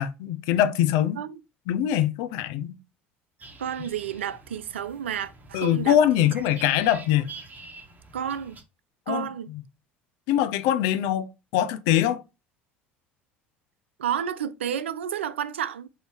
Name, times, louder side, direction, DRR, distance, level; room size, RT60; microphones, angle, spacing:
voice 1, 0.0-1.2 1.7-2.7 5.5-7.3 9.1-9.6 10.3-12.2, left 11 dB, 65° left, 0.5 m, -23 dB
sound 1, 3.4-8.6, right 3 dB, 25° right, 1.0 m, -47 dB
voice 2, 3.6-6.0 8.1-8.6 9.1-9.5 14.0-15.9, right 9 dB, 80° right, 0.3 m, -31 dB
4.5 x 2.7 x 3.5 m
hypercardioid pair, 65°, 6 cm